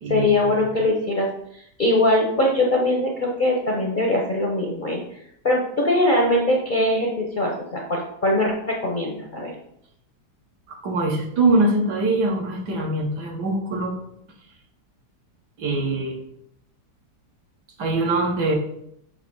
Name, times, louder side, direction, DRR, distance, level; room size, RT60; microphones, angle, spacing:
voice 1, 0.1-1.3 1.5-5.0 5.4-9.5, left 1 dB, 45° left, -1 dB, 0.6 m, -21 dB
voice 2, 10.8-14.0 15.6-16.2 17.8-18.6, right 2 dB, 70° right, 1 dB, 1.6 m, -22 dB
6.6 x 2.9 x 5.3 m, 0.74 s
omnidirectional pair, 1.9 m